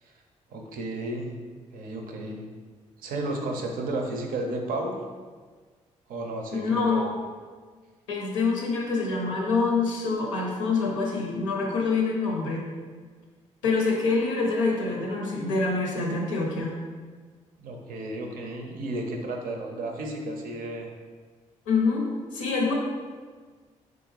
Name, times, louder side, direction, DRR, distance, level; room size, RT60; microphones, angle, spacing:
voice 1, 0.5-1.3 1.7-2.5 3.0-5.0 6.1-7.1 17.6-20.9, right 2 dB, 60° right, 2 dB, 0.5 m, -33 dB
voice 2, 6.5-7.2 8.1-12.6 13.6-16.7 21.7-22.7, left 4 dB, 85° left, -1 dB, 0.5 m, -26 dB
3.5 x 2.6 x 3.1 m, 1.5 s
hypercardioid pair, 40°, 16 cm